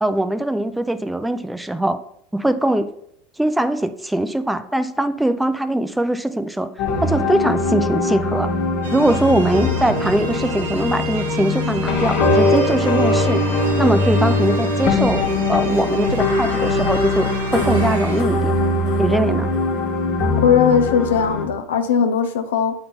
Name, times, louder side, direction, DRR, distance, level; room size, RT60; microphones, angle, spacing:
voice 1, 0.0-2.0 2.3-2.9 3.4-6.7 7.0-8.5 8.9-13.4 13.8-18.5 19.0-19.5, right 1 dB, 5° right, 11 dB, 0.4 m, -21 dB
sound 1, 6.8-21.5, left 2 dB, 70° left, 1.6 m, -21 dB
sound 2, 8.8-18.2, right 5 dB, 90° right, 0.8 m, -32 dB
voice 2, 20.4-22.7, left 7 dB, 85° left, 7 dB, 0.6 m, -18 dB
7.6 x 4.0 x 3.4 m, 0.70 s
hypercardioid pair, 95°, 0 cm